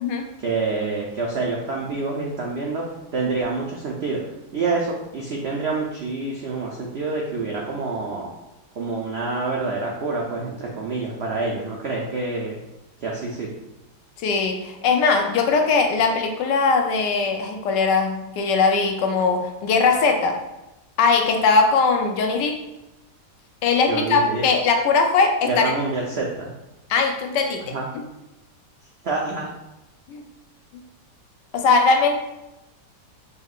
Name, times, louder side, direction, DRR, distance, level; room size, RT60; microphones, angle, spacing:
voice 1, 0.4-2.9 3.1-4.2 4.5-8.3 8.8-12.6 13.0-13.5 23.9-24.5 25.5-26.5 27.7-27.9 29.0-29.5, right 3 dB, 85° right, -2 dB, 0.5 m, -27 dB
voice 2, 14.2-20.4 21.0-22.6 23.6-25.7 26.9-27.8 30.1-30.2 30.7-30.8 31.5-32.1, left 4 dB, 85° left, 3 dB, 1.3 m, -20 dB
5.5 x 2.9 x 2.4 m, 0.97 s
omnidirectional pair, 1.8 m